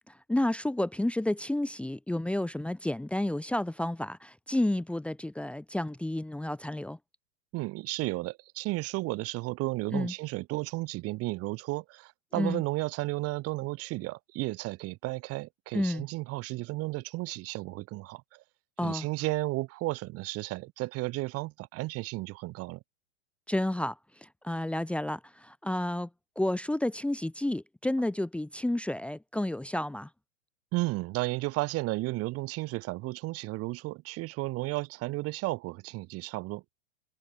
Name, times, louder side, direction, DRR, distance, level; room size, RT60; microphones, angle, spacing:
voice 1, 0.1-7.0 9.9-10.1 12.3-12.6 15.7-16.0 18.8-19.1 23.5-26.1 26.4-30.1, left 1 dB, 5° left, 1.5 m, -31 dB
voice 2, 7.5-18.4 18.8-22.8 30.7-36.7, right 20 dB, 40° right, 2.4 m, -33 dB
hypercardioid pair, 105°, 36 cm